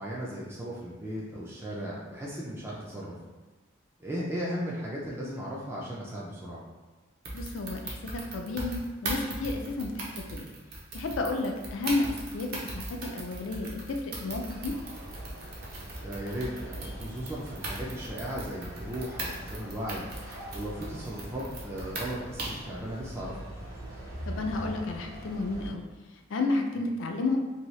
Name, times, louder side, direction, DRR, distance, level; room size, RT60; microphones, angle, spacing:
voice 1, 0.0-3.2 4.0-6.6 16.0-20.1 20.5-23.4, equal, 10° right, -5 dB, 0.3 m, -36 dB
sound 1, 7.2-22.7, right 2 dB, 50° right, 0.6 m, -39 dB
voice 2, 7.3-10.5 10.9-14.7 24.3-25.8 26.3-27.4, left 3 dB, 70° left, 3 dB, 0.4 m, -32 dB
sound 2, 14.5-25.7, equal, 80° right, 1.0 m, -43 dB
2.8 x 2.7 x 3.1 m, 1.3 s
head